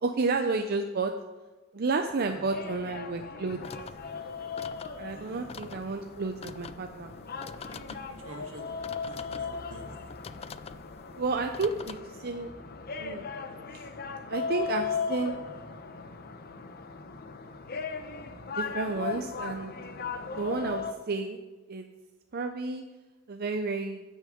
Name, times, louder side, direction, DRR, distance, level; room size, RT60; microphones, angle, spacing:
voice 1, 0.0-1.1 1.7-3.6 5.0-7.1 11.2-12.5 13.0-13.2 13.7-13.8 14.3-15.4 18.6-19.7 20.2-21.4 21.7-21.9 22.3-22.8 23.3-24.0, right 3 dB, 45° right, 6 dB, 0.6 m, -31 dB
sound 1, 2.2-20.9, left 5 dB, 45° left, 0.8 m, -38 dB
voice 2, 2.2-3.3 5.1-5.7 7.6-8.7 9.0-9.9, right 1 dB, 75° right, 3 dB, 1.7 m, -49 dB
sound 2, 3.6-12.0, left 5 dB, 30° left, 0.3 m, -46 dB
15.0 x 6.5 x 5.0 m, 1.2 s
head